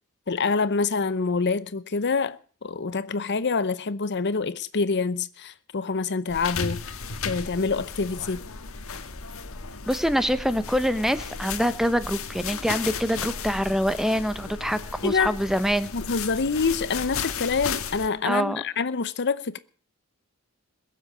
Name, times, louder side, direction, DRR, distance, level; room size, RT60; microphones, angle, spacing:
voice 1, 0.3-7.0 7.2-8.4 15.0-15.4 15.9-19.6, left 4 dB, 50° left, 0.8 m, -26 dB
sound 1, 6.3-18.1, left 5 dB, 65° left, 1.5 m, -35 dB
voice 2, 9.9-15.9 18.2-18.6, equal, ahead, 0.9 m, -25 dB
22.0 x 7.6 x 8.4 m
head